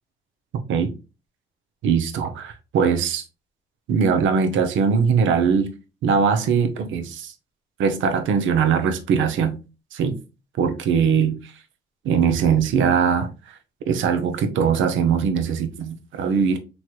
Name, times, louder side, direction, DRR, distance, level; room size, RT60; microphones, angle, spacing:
voice 1, 1.8-3.3 3.9-5.7 6.0-7.3 7.8-9.6 9.9-10.2 10.6-11.5 12.0-13.6 13.9-16.6, right 6 dB, 75° right, 0.6 m, -21 dB
3.0 x 3.0 x 2.3 m
cardioid pair, 90°, 20 cm